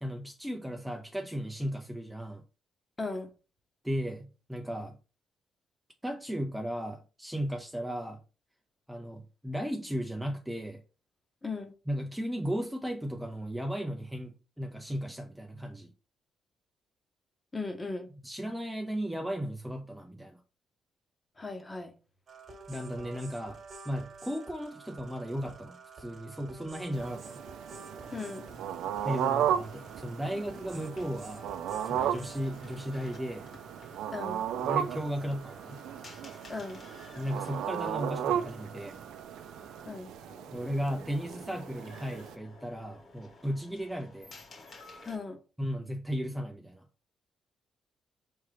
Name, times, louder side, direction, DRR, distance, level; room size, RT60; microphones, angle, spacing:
voice 1, 0.0-2.4 3.8-5.0 6.0-8.2 8.9-10.8 11.9-15.9 18.2-20.4 22.7-27.4 29.0-31.5 31.8-33.5 34.6-35.8 37.2-39.0 40.5-44.3 45.6-46.9, equal, 5° right, 0.5 m, -35 dB
voice 2, 3.0-3.3 11.4-11.7 17.5-18.1 21.4-21.9 28.1-28.4 34.1-34.5 36.5-36.8 39.8-40.1 45.0-45.4, left 3 dB, 20° left, 1.0 m, -37 dB
sound 1, 22.3-39.9, right 4 dB, 50° right, 1.2 m, -50 dB
sound 2, 26.9-42.3, right 10 dB, 85° right, 0.4 m, -35 dB
sound 3, 28.0-45.2, left 2 dB, 45° left, 1.7 m, -54 dB
4.3 x 3.6 x 3.3 m
cardioid pair, 90°, 0 cm